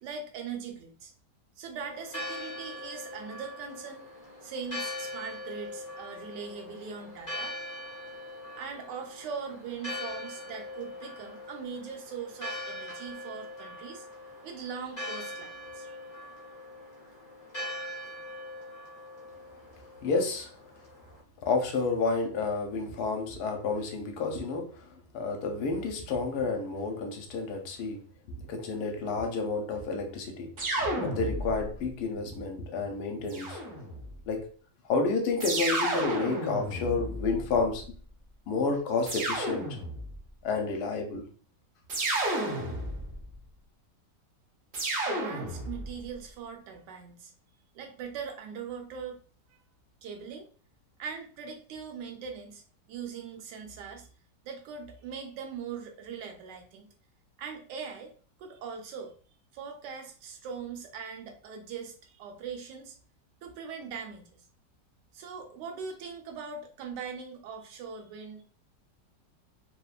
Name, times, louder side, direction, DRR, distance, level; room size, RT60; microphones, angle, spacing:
voice 1, 0.0-1.1 1.6-4.1 4.4-7.6 8.6-14.1 14.4-16.0 45.0-47.3 47.7-49.2 49.5-49.6 50.0-50.5 51.0-52.6 52.9-54.1 54.4-56.9 57.4-58.1 58.4-59.1 59.5-63.0 63.4-64.4 65.1-68.4, right 6 dB, 80° right, 4 dB, 1.2 m, -41 dB
Church bell, 1.7-21.2, left 1 dB, 45° left, 0.5 m, -42 dB
voice 2, 20.0-20.5 21.4-28.0 28.3-33.6 34.3-34.5 34.8-37.9 38.5-39.7 40.4-41.2, left 4 dB, 75° left, 3 dB, 1.1 m, -30 dB
sound 1, 30.6-31.8 33.3-34.1 35.4-37.7 39.1-40.2 41.9-43.2 44.7-46.0, right 1 dB, 45° right, 0.7 m, -32 dB
3.0 x 2.1 x 2.3 m, 0.42 s
omnidirectional pair, 1.9 m